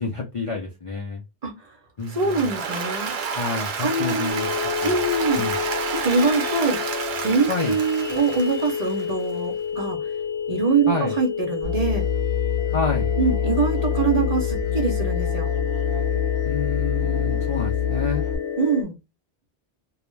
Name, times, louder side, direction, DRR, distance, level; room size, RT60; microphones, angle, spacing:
voice 1, 0.0-1.2 2.0-2.5 3.3-4.5 4.8-5.0 5.3-5.6 7.5-7.8 10.9-11.2 12.7-13.1 16.4-18.2, left 3 dB, 45° left, 0.4 m, -28 dB
voice 2, 1.4-1.7 2.1-3.1 3.8-4.4 4.8-5.5 5.9-6.8 7.2-10.0 10.5-12.1 13.2-15.5 18.6-19.0, right 4 dB, 40° right, 0.7 m, -24 dB
Applause, 2.0-9.2, right 5 dB, 70° right, 0.9 m, -30 dB
sound 1, 4.3-18.8, left 7 dB, 70° left, 0.9 m, -29 dB
Musical instrument, 11.6-18.4, left 7 dB, 30° left, 0.8 m, -25 dB
2.3 x 2.1 x 3.0 m
omnidirectional pair, 1.1 m